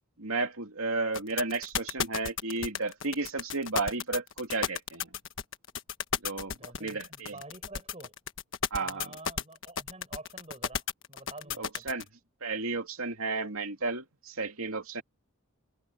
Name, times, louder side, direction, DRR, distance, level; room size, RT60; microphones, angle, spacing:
voice 1, 0.2-5.2 6.2-7.4 8.7-9.1 11.6-12.0 12.4-15.0, right 3 dB, 70° right, 2.7 m, -33 dB
sound 1, 1.1-12.0, left 7 dB, 55° left, 1.3 m, -33 dB
voice 2, 6.5-8.1 8.8-12.0, right 2 dB, 30° right, 7.4 m, -48 dB
head